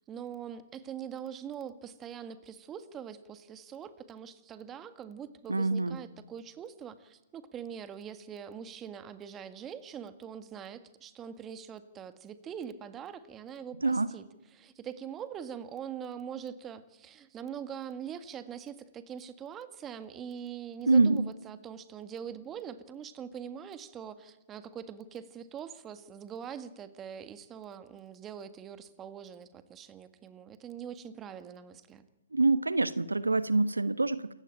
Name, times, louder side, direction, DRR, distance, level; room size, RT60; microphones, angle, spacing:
voice 1, 0.1-14.2 14.5-32.0, right 8 dB, 15° right, 11 dB, 1.7 m, -43 dB
voice 2, 5.5-6.0 13.8-14.1 20.9-21.3 32.3-34.3, right 3 dB, 85° right, 15 dB, 1.2 m, -25 dB
28.0 x 15.5 x 9.0 m, 1.1 s
figure-of-eight pair, 130°, 0 cm